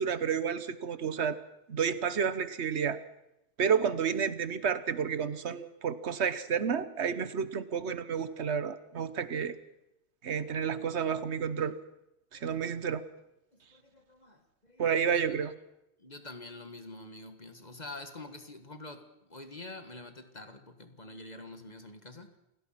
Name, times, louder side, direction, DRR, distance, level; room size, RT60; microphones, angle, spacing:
voice 1, 0.0-1.4 1.7-3.0 3.6-9.6 10.2-11.7 12.3-13.0 14.8-15.5, right 7 dB, 75° right, 14 dB, 1.4 m, -30 dB
voice 2, 12.3-12.7 13.5-14.8 15.1-15.3 16.0-19.0 19.3-22.4, left 2 dB, 40° left, 7 dB, 1.9 m, -47 dB
28.0 x 18.0 x 5.9 m, 0.86 s
omnidirectional pair, 1.1 m